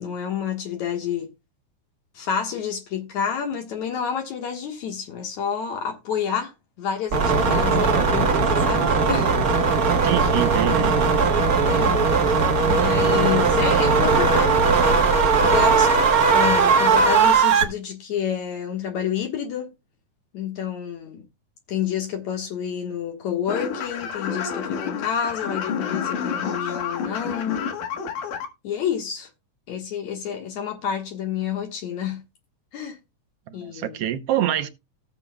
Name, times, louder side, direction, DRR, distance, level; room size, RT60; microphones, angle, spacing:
voice 1, 0.0-1.3 2.1-6.5 6.8-9.3 11.6-12.4 12.7-14.7 15.3-19.7 20.3-21.3 21.7-27.7 28.6-29.3 29.7-32.2 32.7-33.0 33.5-34.0, left 8 dB, 70° left, 2.7 m, -29 dB
sound 1, 7.1-17.6, right 4 dB, 50° right, 1.1 m, -18 dB
voice 2, 10.0-11.0 33.5-34.7, right 12 dB, 70° right, 1.5 m, -26 dB
sound 2, 23.5-28.5, left 7 dB, 85° left, 2.9 m, -29 dB
17.0 x 7.2 x 2.3 m
omnidirectional pair, 3.5 m